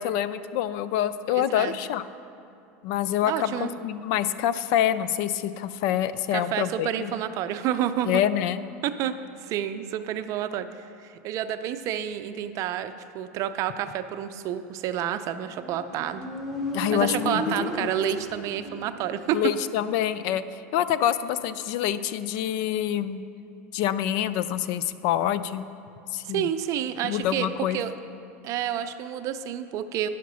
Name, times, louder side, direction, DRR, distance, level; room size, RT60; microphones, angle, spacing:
voice 1, 0.0-2.0 2.8-7.1 8.0-8.6 16.7-17.6 17.8-17.9 19.3-23.2 23.7-25.7 26.1-26.5 27.0-27.8, left 11 dB, 60° left, 14 dB, 0.4 m, -26 dB
voice 2, 1.3-1.8 3.2-3.7 6.3-8.2 8.8-9.1 9.4-10.7 11.0-16.3 16.9-19.4 26.3-27.9 28.4-30.1, right 10 dB, 50° right, 10 dB, 0.5 m, -29 dB
Motorcycle, 15.5-19.1, equal, ahead, 1.5 m, -33 dB
10.0 x 5.8 x 6.1 m, 2.8 s
supercardioid pair, 115°, 7 cm